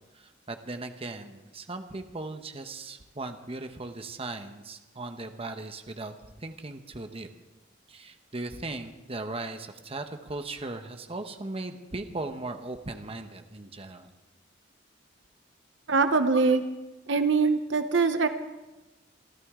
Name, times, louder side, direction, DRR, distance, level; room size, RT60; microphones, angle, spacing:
voice 1, 0.1-7.3 7.9-14.1, right 2 dB, 30° right, 7 dB, 1.0 m, -38 dB
voice 2, 15.9-16.6 17.1-18.3, right 4 dB, 70° right, 9 dB, 1.0 m, -23 dB
27.0 x 13.5 x 3.7 m, 1.1 s
head